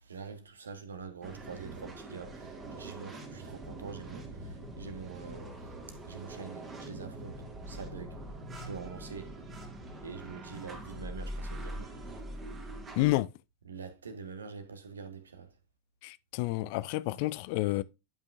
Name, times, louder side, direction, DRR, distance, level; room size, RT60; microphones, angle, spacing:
voice 1, 0.0-5.5 6.0-8.2 8.6-9.4 10.0-11.9 13.6-15.5, right 5 dB, 70° right, 1.4 m, -45 dB
sound 1, 1.2-13.2, right 1 dB, 20° right, 2.1 m, -43 dB
voice 2, 13.0-13.3 16.0-17.8, left 18 dB, 45° left, 0.4 m, -29 dB
10.5 x 5.5 x 2.5 m
figure-of-eight pair, 90°, 0 cm